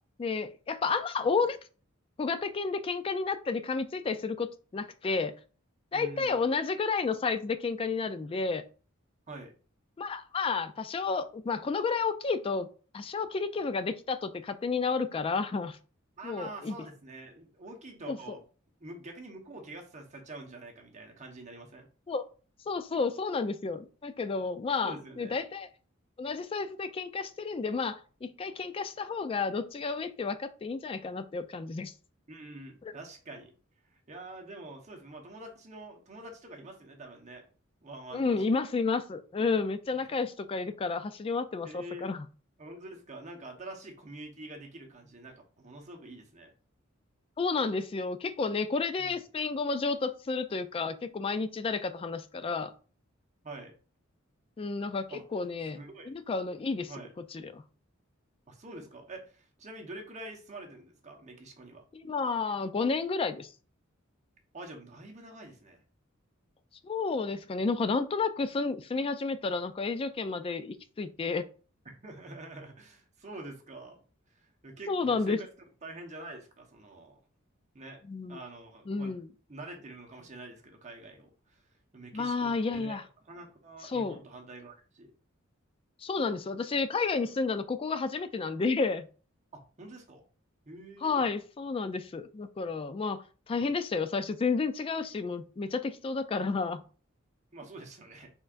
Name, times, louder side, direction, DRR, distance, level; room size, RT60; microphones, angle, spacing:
voice 1, 0.2-1.6 2.2-5.3 5.9-8.6 10.0-12.7 12.9-15.8 16.2-16.8 18.1-18.2 22.1-22.3 22.7-25.7 26.2-31.9 32.8-32.9 38.1-42.3 47.4-52.7 54.6-55.8 56.1-56.9 57.3-57.6 61.9-63.5 66.8-71.4 74.9-75.4 78.1-78.4 78.9-79.3 82.1-83.0 83.8-84.2 86.0-89.1 91.0-96.8, left 4 dB, 25° left, 11 dB, 0.3 m, -31 dB
voice 2, 5.9-6.4 9.3-9.5 16.2-18.4 18.8-21.9 24.8-25.4 32.3-33.5 33.8-37.4 37.8-38.6 40.1-40.2 41.6-42.2 42.6-46.5 49.0-49.2 53.4-53.7 55.1-55.2 55.6-56.1 56.9-57.1 58.5-61.8 64.5-65.8 71.8-74.0 74.3-75.5 75.8-77.2 77.7-78.0 78.3-79.1 79.5-85.1 89.5-90.2 90.6-91.2 93.5-93.7 97.5-98.3, right 2 dB, 35° right, 2 dB, 1.0 m, -46 dB
4.5 x 4.4 x 2.5 m, 0.38 s
head